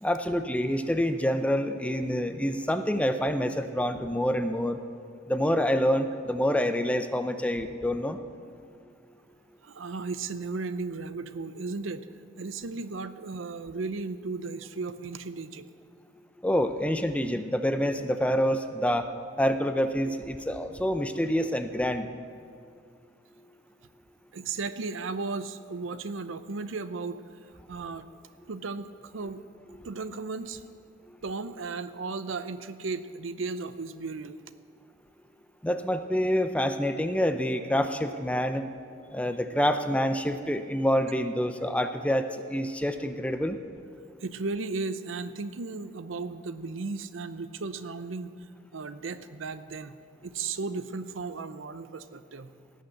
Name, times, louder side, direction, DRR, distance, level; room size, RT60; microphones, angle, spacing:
voice 1, 0.0-4.8 5.3-8.2 16.4-19.1 19.4-22.1 35.6-38.7 39.1-43.6, equal, 5° left, 8 dB, 0.5 m, -27 dB
voice 2, 9.6-12.1 12.4-15.7 24.3-27.2 27.7-28.1 28.5-29.4 29.8-30.6 31.2-34.4 44.2-48.3 48.7-50.0 50.2-52.5, right 4 dB, 85° right, 12 dB, 0.6 m, -35 dB
17.0 x 6.4 x 7.8 m, 2.2 s
head